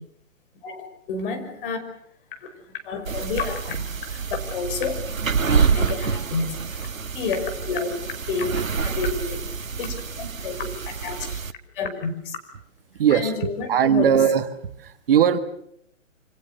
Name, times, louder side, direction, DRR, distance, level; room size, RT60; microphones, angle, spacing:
voice 1, 0.6-1.8 2.4-5.0 5.7-6.9 7.1-8.0 8.3-8.5 8.8-9.4 9.8-11.4 11.7-12.4 13.1-14.2, left 4 dB, 40° left, 6 dB, 5.5 m, -30 dB
sound 1, 3.1-11.5, right 6 dB, 85° right, 1.3 m, -27 dB
voice 2, 13.0-13.3 13.7-14.5 14.8-15.4, right 8 dB, 45° right, 10 dB, 1.8 m, -19 dB
27.5 x 26.0 x 6.8 m, 0.70 s
figure-of-eight pair, 140°, 39 cm